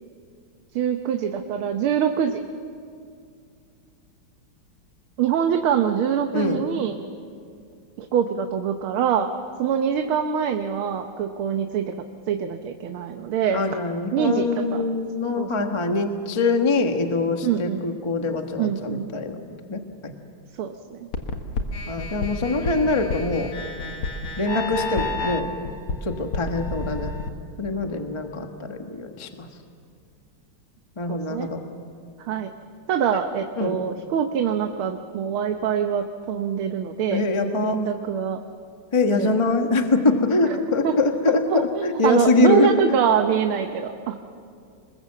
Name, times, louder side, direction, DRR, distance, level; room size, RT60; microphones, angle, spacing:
voice 1, 0.8-2.4 5.2-7.0 8.0-9.3 9.6-11.9 12.3-13.7 14.1-14.9 15.4-15.7 17.4-17.8 18.6-19.1 20.6-21.1 31.1-31.5 32.3-32.5 32.9-37.2 37.6-38.4 39.1-39.3 40.8-41.0 41.5-44.3, right 8 dB, 90° right, 6 dB, 1.8 m, -24 dB
voice 2, 13.5-19.4 19.7-20.1 21.9-23.5 24.4-25.5 26.0-27.1 27.6-29.5 31.0-31.6 33.1-33.2 33.6-33.8 37.1-37.8 38.9-42.7, left 3 dB, 20° left, 4 dB, 1.1 m, -23 dB
sound 1, 21.1-27.3, left 3 dB, 85° left, 2.5 m, -30 dB
26.5 x 21.0 x 7.5 m, 2.4 s
omnidirectional pair, 2.3 m